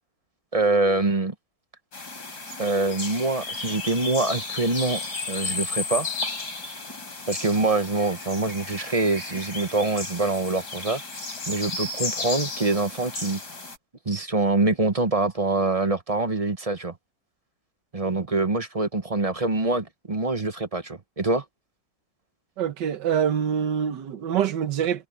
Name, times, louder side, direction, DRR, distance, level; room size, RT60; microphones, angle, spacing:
voice 1, 0.5-1.3 2.6-6.1 7.3-11.0 11.5-13.4 14.1-16.9 17.9-21.4, right 2 dB, 25° right, 0.9 m, -25 dB
sound 1, 1.9-13.8, left 3 dB, 70° left, 4.8 m, -33 dB
voice 2, 22.6-25.1, right 8 dB, 85° right, 1.7 m, -25 dB
omnidirectional pair, 1.8 m